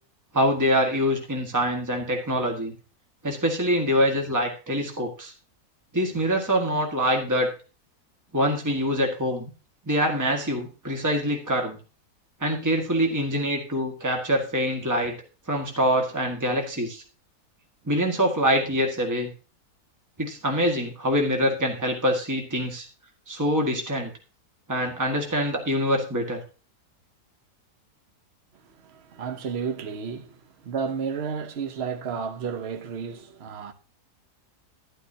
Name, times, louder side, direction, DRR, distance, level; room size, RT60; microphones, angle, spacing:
voice 1, 0.3-2.7 3.2-5.3 5.9-7.5 8.3-9.5 9.8-11.8 12.4-15.1 15.5-17.0 17.9-19.3 20.2-22.9 23.3-24.1 24.7-26.4, equal, 10° right, 1.6 m, -24 dB
voice 2, 28.5-33.7, right 6 dB, 50° right, 1.0 m, -32 dB
11.5 x 11.0 x 2.8 m
omnidirectional pair, 1.7 m